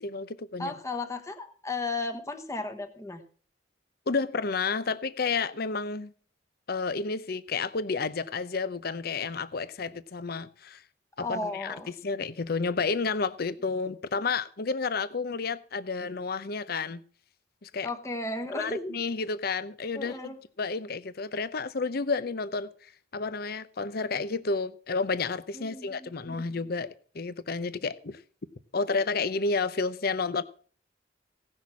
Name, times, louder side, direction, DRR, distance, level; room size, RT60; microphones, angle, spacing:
voice 1, 0.0-0.7 4.1-6.1 6.7-10.8 11.2-17.0 17.6-17.9 18.5-22.7 23.1-26.9 27.1-28.2 28.7-30.4, left 4 dB, 55° left, 0.7 m, -31 dB
voice 2, 0.6-3.2 11.2-11.9 17.8-18.9 19.9-20.4 25.5-26.4, left 2 dB, 15° left, 1.1 m, -35 dB
17.0 x 6.4 x 5.9 m
head